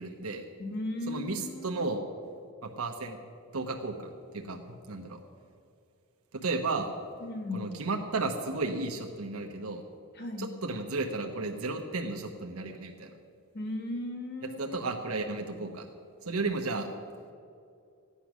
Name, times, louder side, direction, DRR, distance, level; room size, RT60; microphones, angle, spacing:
voice 1, 0.0-0.4 1.1-2.0 2.6-3.2 3.5-4.6 4.9-5.2 6.3-6.9 7.5-9.8 10.4-13.1 14.6-15.9 16.3-16.9, right 3 dB, 85° right, 2 dB, 1.1 m, -33 dB
voice 2, 0.6-1.9 7.2-7.7 10.1-10.5 13.5-14.8, left 2 dB, 50° left, 4 dB, 1.5 m, -36 dB
15.0 x 10.0 x 6.1 m, 2.5 s
head